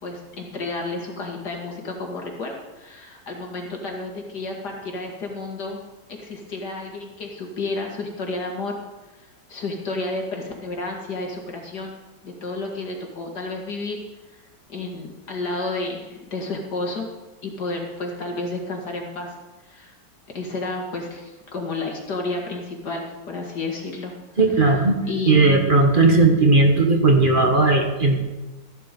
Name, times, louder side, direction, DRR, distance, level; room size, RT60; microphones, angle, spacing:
voice 1, 0.0-5.8 6.1-8.8 9.5-11.9 12.2-14.0 14.3-14.4 14.7-17.1 17.4-19.4 19.7-19.9 20.3-24.1 24.5-25.4, left 2 dB, 65° left, 0 dB, 2.5 m, -31 dB
voice 2, 24.4-25.0 25.3-28.2, right 3 dB, 30° right, 3 dB, 1.5 m, -16 dB
14.0 x 11.5 x 5.3 m, 1.1 s
omnidirectional pair, 2.0 m